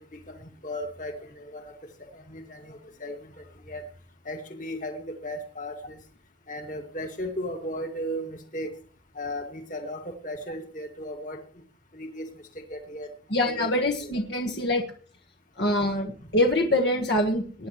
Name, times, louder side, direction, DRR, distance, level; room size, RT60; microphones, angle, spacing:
voice 1, 0.0-1.7 2.0-3.8 4.3-6.0 6.5-8.7 9.1-11.4 11.9-12.3 12.5-13.1 13.4-13.7 14.0-14.1, equal, 40° left, 4 dB, 2.1 m, -36 dB
voice 2, 13.3-14.8 15.6-17.7, left 1 dB, 60° left, 3 dB, 1.5 m, -25 dB
19.0 x 10.0 x 3.2 m, 0.43 s
head